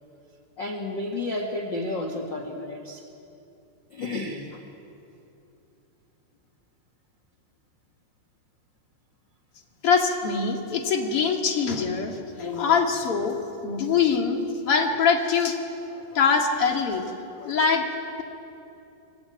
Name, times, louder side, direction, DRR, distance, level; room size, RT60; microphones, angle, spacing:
voice 1, 0.6-3.0 3.9-4.6 15.9-16.2 17.4-17.6, left 2 dB, 85° left, 4 dB, 1.0 m, -32 dB
voice 2, 9.8-15.6 16.1-17.0 17.4-17.9, left 5 dB, 40° left, 1 dB, 2.5 m, -23 dB
25.5 x 25.0 x 9.3 m, 2.8 s
omnidirectional pair, 5.5 m